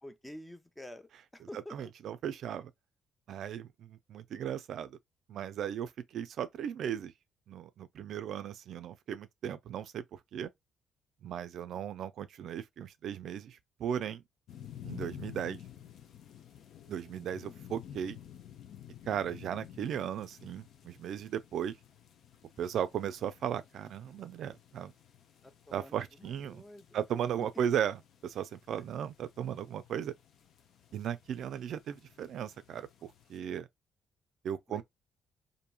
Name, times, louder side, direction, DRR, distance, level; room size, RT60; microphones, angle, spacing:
voice 1, 0.0-1.8 25.4-27.0 34.7-34.8, left 1 dB, 10° left, 0.6 m, -49 dB
voice 2, 1.5-2.7 3.3-5.0 5.3-7.1 7.5-10.5 11.2-14.2 14.8-15.6 16.9-18.2 19.1-21.7 22.6-24.9 25.7-26.6 26.9-30.1 30.9-33.7 34.4-34.8, right 9 dB, 70° right, 0.3 m, -36 dB
sound 1, 14.5-33.4, left 10 dB, 70° left, 0.6 m, -52 dB
2.9 x 2.6 x 2.2 m
cardioid pair, 90°, 0 cm